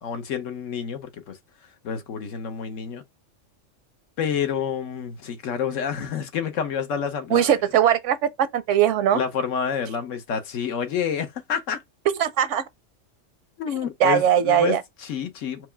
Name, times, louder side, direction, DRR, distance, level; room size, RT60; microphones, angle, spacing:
voice 1, 0.0-1.4 1.8-3.0 4.2-7.6 9.1-11.8 13.6-15.7, left 7 dB, 85° left, 1.2 m, -28 dB
voice 2, 7.3-8.2 8.5-9.2 12.2-12.6 14.0-14.8, right 10 dB, 80° right, 1.0 m, -20 dB
4.7 x 2.3 x 3.4 m
omnidirectional pair, 1.3 m